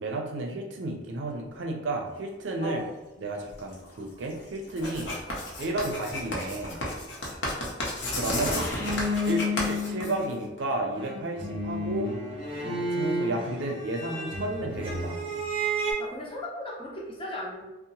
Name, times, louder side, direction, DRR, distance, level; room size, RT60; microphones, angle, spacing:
voice 1, 0.0-2.8 3.2-5.2 5.6-7.0 8.1-8.6 9.2-12.1 12.6-15.2, right 2 dB, 80° right, 2 dB, 0.4 m, -32 dB
sound 1, 1.8-7.5 7.8-8.1 8.4-9.2 10.1-10.3, left 1 dB, 60° left, 1.0 m, -45 dB
Writing, 4.8-10.6, left 1 dB, 75° left, 0.6 m, -32 dB
sound 2, 8.1-10.6 10.9-15.9, equal, 30° right, 0.6 m, -31 dB
voice 2, 8.3-8.7 16.0-17.6, left 1 dB, 30° left, -3 dB, 0.5 m, -36 dB
2.7 x 2.0 x 2.8 m, 1.0 s
head